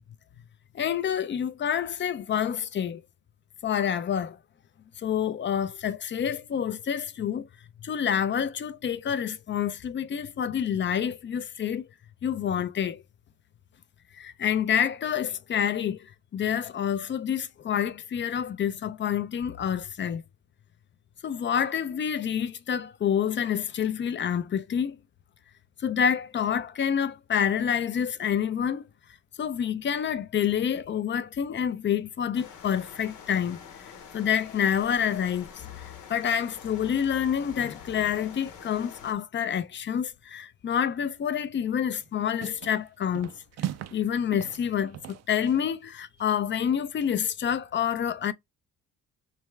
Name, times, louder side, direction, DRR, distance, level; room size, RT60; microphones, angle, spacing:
voice 1, 0.7-3.0 3.6-4.4 5.0-7.5 7.8-11.8 12.2-13.0 14.1-20.2 21.2-25.0 25.8-28.8 29.4-33.6 34.1-43.3 43.9-45.0 45.3-48.3, left 8 dB, 40° left, 0.5 m, -28 dB
sound 1, 32.3-39.1, left 7 dB, 85° left, 1.0 m, -47 dB
sound 2, 41.8-42.1 42.4-42.8 43.1-44.1 44.3-45.7, right 12 dB, 60° right, 0.5 m, -38 dB
3.4 x 3.2 x 3.1 m
cardioid pair, 90°, 30 cm